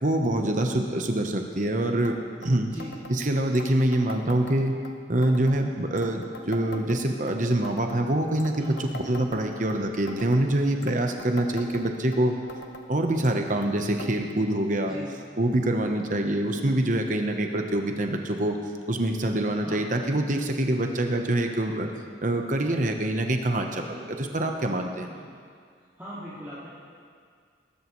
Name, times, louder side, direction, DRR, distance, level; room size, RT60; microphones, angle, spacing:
voice 1, 0.0-2.2 2.4-2.7 3.1-4.7 5.1-12.4 12.9-15.0 15.4-18.6 18.9-21.9 22.2-25.1, right 1 dB, 40° right, 4 dB, 1.0 m, -25 dB
sound 1, 2.0-2.2 2.4-2.5 2.8-3.2 3.5-4.9 5.2-5.6 6.0-7.3 7.6-8.0 8.4-9.8 10.1-10.4 10.8-12.2 12.5-12.9 13.2-13.7 14.0-14.1 14.4-14.5 15.2-15.3 16.1-16.2, left 1 dB, 65° left, 1.0 m, -42 dB
voice 2, 26.0-26.7, equal, 10° right, -14 dB, 2.7 m, -40 dB
20.5 x 12.5 x 3.2 m, 2.1 s
head